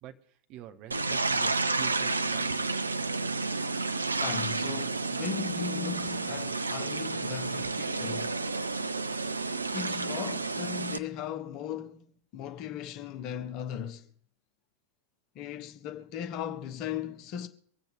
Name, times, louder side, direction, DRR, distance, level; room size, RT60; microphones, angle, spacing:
voice 1, 0.0-2.5, right 11 dB, 40° right, 1.1 m, -46 dB
sound 1, 0.9-11.0, right 3 dB, 80° right, 0.5 m, -31 dB
voice 2, 4.2-8.4 9.7-14.1 15.3-17.5, left 9 dB, 40° left, 1.1 m, -37 dB
24.0 x 8.1 x 3.5 m
figure-of-eight pair, 90°, 0 cm